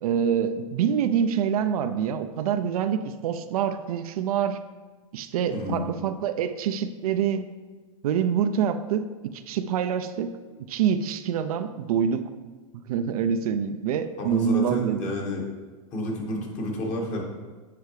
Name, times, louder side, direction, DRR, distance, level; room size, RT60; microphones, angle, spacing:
voice 1, 0.0-4.6 5.1-7.4 8.0-10.3 10.7-12.3 12.7-15.3, right 8 dB, 80° right, 9 dB, 0.5 m, -26 dB
voice 2, 5.5-6.0 14.2-15.4 15.9-17.2, left 1 dB, 40° left, 0 dB, 1.6 m, -30 dB
8.5 x 4.6 x 3.2 m, 1.4 s
hypercardioid pair, 115°, 18 cm